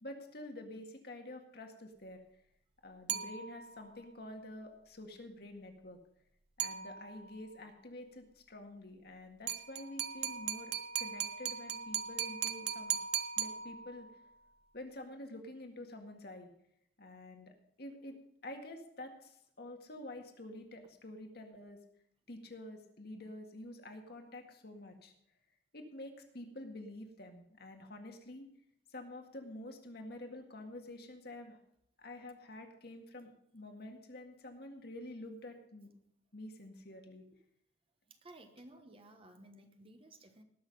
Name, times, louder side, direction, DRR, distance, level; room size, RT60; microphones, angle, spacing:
voice 1, 0.0-2.2 2.8-6.0 6.6-13.0 13.4-14.1 14.7-16.5 17.0-21.8 22.3-25.1 25.7-28.5 28.9-31.6 32.0-35.9 36.3-37.2, left 1 dB, 65° left, 4 dB, 1.9 m, -48 dB
sound 1, 3.1-3.9 6.6-7.4 9.5-14.2, right 9 dB, 65° right, 0.8 m, -38 dB
voice 2, 38.1-40.4, right 1 dB, 30° right, 6 dB, 1.1 m, -56 dB
19.0 x 6.5 x 5.3 m, 0.74 s
head